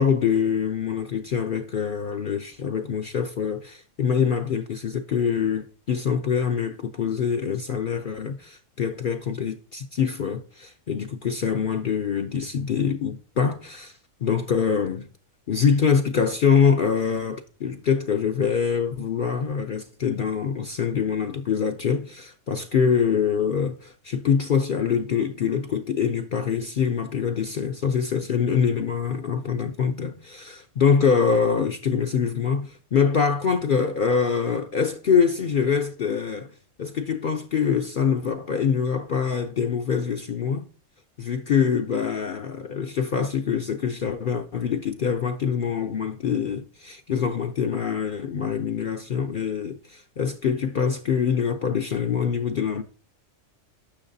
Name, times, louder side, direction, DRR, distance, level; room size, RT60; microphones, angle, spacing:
voice 1, 0.0-15.1 15.5-40.7 41.2-52.8, left 6 dB, 55° left, 0.6 m, -24 dB
10.0 x 6.4 x 2.7 m
omnidirectional pair, 1.3 m